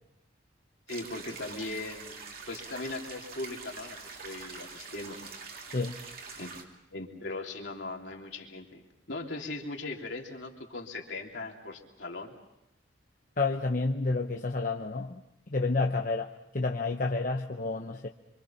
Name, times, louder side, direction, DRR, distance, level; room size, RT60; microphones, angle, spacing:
voice 1, 0.9-2.2 2.5-5.2 6.4-6.6 6.9-12.3, left 2 dB, 65° left, 0 dB, 3.3 m, -39 dB
sound 1, 0.9-6.6, right 4 dB, 50° right, 2.8 m, -45 dB
voice 2, 5.7-6.0 13.4-15.2 15.5-18.1, left 3 dB, 45° left, 3 dB, 0.9 m, -30 dB
27.0 x 25.5 x 5.8 m, 0.85 s
head